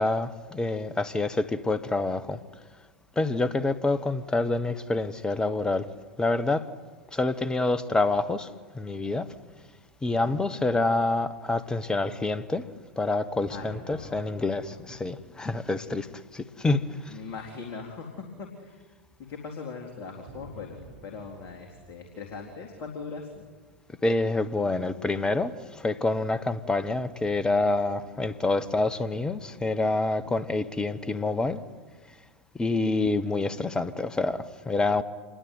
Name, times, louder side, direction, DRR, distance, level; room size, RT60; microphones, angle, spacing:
voice 1, 0.0-2.4 3.2-5.9 6.2-6.7 7.1-8.5 8.7-9.3 10.0-12.7 13.0-16.1 16.3-16.8 24.0-31.6 32.5-35.0, left 2 dB, 10° left, 1.3 m, -27 dB
sound 1, 9.2-11.1 13.4-17.2 17.5-17.6 20.3-23.9, right 2 dB, 55° right, 7.5 m, -52 dB
voice 2, 10.0-10.6 13.5-14.4 17.1-18.8 19.3-23.5, left 4 dB, 40° left, 3.9 m, -40 dB
27.5 x 21.5 x 9.4 m
figure-of-eight pair, 90°, 6 cm